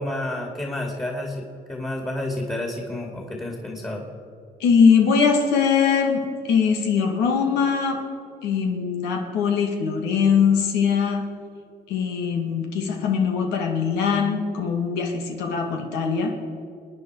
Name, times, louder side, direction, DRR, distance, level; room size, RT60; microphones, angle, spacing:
voice 1, 0.0-4.1, left 1 dB, 15° left, 0 dB, 2.4 m, -30 dB
voice 2, 4.6-8.0 8.4-11.3 11.9-16.4, left 6 dB, 90° left, 2 dB, 2.1 m, -21 dB
27.0 x 9.7 x 4.8 m, 2.5 s
cardioid pair, 110°, 17 cm